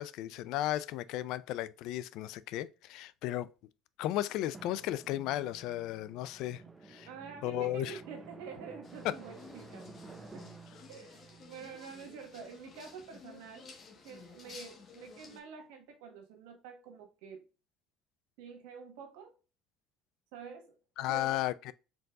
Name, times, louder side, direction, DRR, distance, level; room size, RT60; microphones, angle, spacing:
voice 1, 0.0-3.5 4.0-6.6 6.9-7.1 7.4-8.0 9.0-9.1 21.0-21.7, left 14 dB, 70° left, 0.3 m, -34 dB
Drum, 4.5-12.8, right 3 dB, 20° right, 0.6 m, -53 dB
voice 2, 7.1-10.4 10.9-13.7 14.0-17.5 18.4-19.3 20.3-21.4, right 6 dB, 90° right, 1.4 m, -48 dB
sound 1, 8.8-15.4, left 5 dB, 45° left, 1.2 m, -54 dB
4.6 x 3.8 x 2.3 m
supercardioid pair, 95°, 0 cm